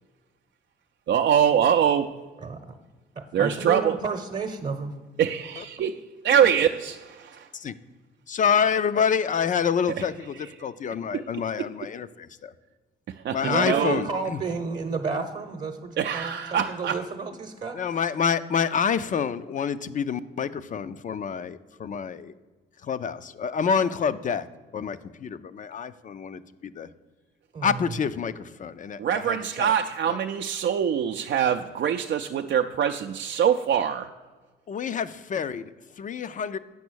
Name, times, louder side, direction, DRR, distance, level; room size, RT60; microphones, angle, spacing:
voice 1, 1.1-2.1 3.3-4.0 5.2-7.5 11.1-11.2 11.6-11.7 13.1-14.0 16.0-17.0 29.0-34.1, right 8 dB, 60° right, 0.5 m, -24 dB
voice 2, 2.4-2.7 3.1-4.9 13.4-17.8 27.5-27.7, right 4 dB, 40° right, 0.8 m, -31 dB
voice 3, 8.3-12.5 13.3-14.4 17.7-22.3 22.8-24.5 24.7-26.9 27.6-29.7 34.7-36.6, left 7 dB, 40° left, 0.5 m, -27 dB
8.4 x 6.0 x 6.2 m
cardioid pair, 90°, 20 cm